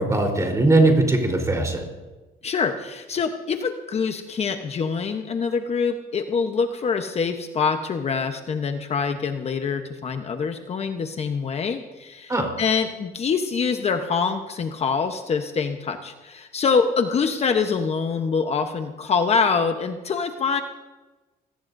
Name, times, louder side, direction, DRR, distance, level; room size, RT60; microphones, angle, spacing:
voice 1, 0.0-1.9 12.3-12.5, right 2 dB, 20° right, 2 dB, 4.0 m, -20 dB
voice 2, 2.4-12.3 12.6-20.6, left 5 dB, 40° left, 6 dB, 1.0 m, -25 dB
25.0 x 19.0 x 2.7 m, 1.2 s
cardioid pair, 110°, 17 cm